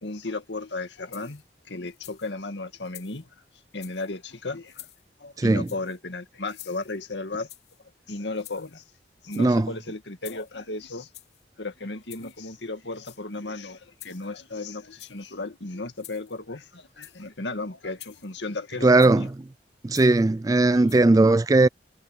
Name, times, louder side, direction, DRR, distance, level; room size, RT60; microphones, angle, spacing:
voice 1, 0.0-3.3 3.7-4.9 5.2-7.5 8.1-8.8 9.2-11.1 11.6-19.3, left 2 dB, 80° left, 2.1 m, -35 dB
sound 1, 1.1-1.5 1.9-2.3 2.8-3.3 3.7-4.1 4.6-5.0 5.6-6.0 6.4-7.0 7.5-7.8 8.3-8.8 9.2-9.6 10.2-10.6 11.1-11.4 12.0-12.4 12.9-13.4 14.0-14.4 14.9-15.3 16.0-16.4 16.9-17.3 18.0-18.4 19.0-19.3 19.9-20.2 20.9-21.0, left 14 dB, 65° left, 3.1 m, -48 dB
voice 2, 5.4-5.7 9.4-9.7 18.8-19.3 19.8-21.7, right 2 dB, 20° right, 0.3 m, -18 dB
head